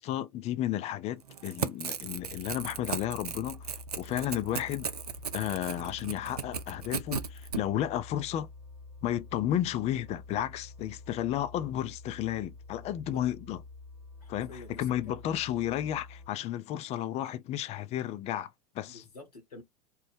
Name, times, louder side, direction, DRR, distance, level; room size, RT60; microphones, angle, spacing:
voice 1, 0.0-3.7 4.0-4.9 5.3-8.5 9.0-13.6 14.3-19.0, left 12 dB, 35° left, 0.4 m, -33 dB
Crackle / Tearing, 1.2-7.6, right 7 dB, 85° right, 0.4 m, -36 dB
sound 1, 1.8-16.3, left 3 dB, 15° right, 1.3 m, -48 dB
voice 2, 14.2-15.2 18.9-19.6, left 3 dB, 85° left, 1.3 m, -48 dB
2.9 x 2.1 x 3.4 m
figure-of-eight pair, 80°, 19 cm